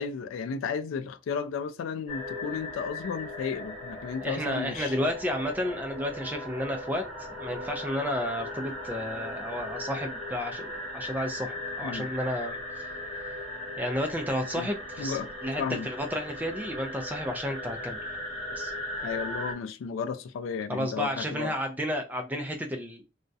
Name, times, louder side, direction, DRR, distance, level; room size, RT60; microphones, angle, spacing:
voice 1, 0.0-5.0 11.8-12.1 14.4-14.7 15.0-15.3 15.6-15.9 19.0-21.5, left 6 dB, 85° left, 0.3 m, -33 dB
sound 1, 2.1-19.5, left 1 dB, 5° left, 1.1 m, -38 dB
voice 2, 4.2-7.0 7.4-12.9 13.8-18.0 18.5-18.7 20.7-23.0, equal, 10° right, 0.3 m, -32 dB
2.3 x 2.0 x 2.6 m
head